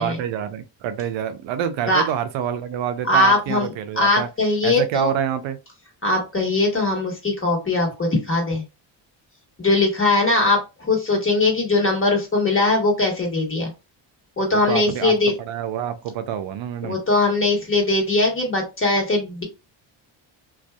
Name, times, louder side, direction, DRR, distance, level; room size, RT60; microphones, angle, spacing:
voice 1, 0.0-4.3 4.6-5.6 14.5-17.0, right 9 dB, 75° right, 0.5 m, -27 dB
voice 2, 3.1-3.7 4.0-5.1 6.0-8.6 9.6-13.7 14.4-15.3 16.8-19.4, left 2 dB, 25° left, 1.4 m, -20 dB
2.6 x 2.3 x 2.2 m
cardioid pair, 70°, 47 cm